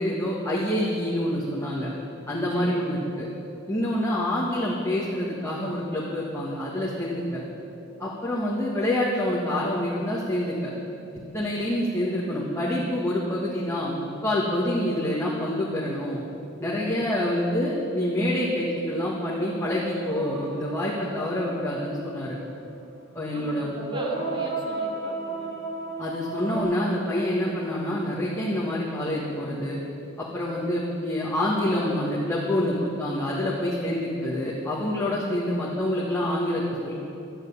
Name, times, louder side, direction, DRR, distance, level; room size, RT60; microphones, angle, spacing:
voice 1, 0.0-1.9 2.3-3.3 3.7-7.4 8.0-10.7 11.3-16.2 16.6-22.4 23.1-23.7 26.0-29.8 30.2-36.9, left 1 dB, 15° left, -7 dB, 1.7 m, -27 dB
voice 2, 2.5-3.1 23.3-25.6, equal, 25° right, 0 dB, 2.0 m, -42 dB
sound 1, 19.2-22.5 23.8-26.6, right 3 dB, 75° right, 2.6 m, -34 dB
12.5 x 8.0 x 9.7 m, 2.7 s
head